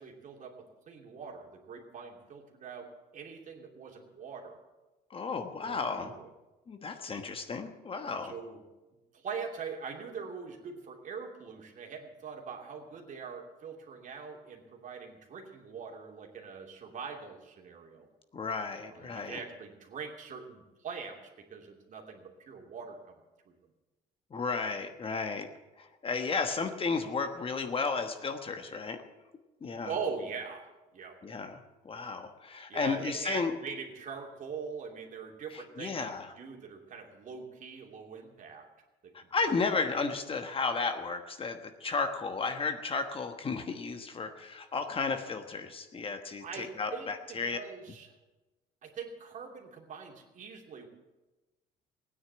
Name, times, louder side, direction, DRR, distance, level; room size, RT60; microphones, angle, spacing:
voice 1, 0.0-2.9 3.1-4.6 5.6-6.3 8.3-8.6 9.1-18.1 18.8-23.2 23.4-23.6 29.8-31.2 32.7-38.7 39.0-39.1 46.4-48.1 48.8-50.9, right 5 dB, 50° right, 1 dB, 2.9 m, -42 dB
voice 2, 5.1-6.1 6.7-8.3 18.3-19.4 24.3-25.5 25.8-29.0 29.6-29.9 31.2-33.5 35.5-36.3 39.1-47.6, left 4 dB, 35° left, 7 dB, 1.2 m, -33 dB
17.0 x 9.8 x 8.0 m, 1.1 s
cardioid pair, 110°, 17 cm